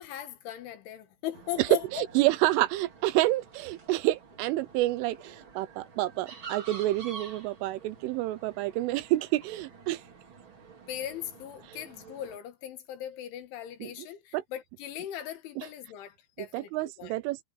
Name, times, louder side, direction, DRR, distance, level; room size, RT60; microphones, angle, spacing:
voice 1, 0.0-2.0 10.9-17.1, left 12 dB, 70° left, 4.0 m, -39 dB
sound 1, 1.3-12.4, right 5 dB, 40° right, 1.8 m, -49 dB
voice 2, 1.9-10.0 13.8-13.9 14.3-14.4 15.6-15.7 16.5-17.4, right 17 dB, 80° right, 3.2 m, -28 dB
omnidirectional pair, 5.9 m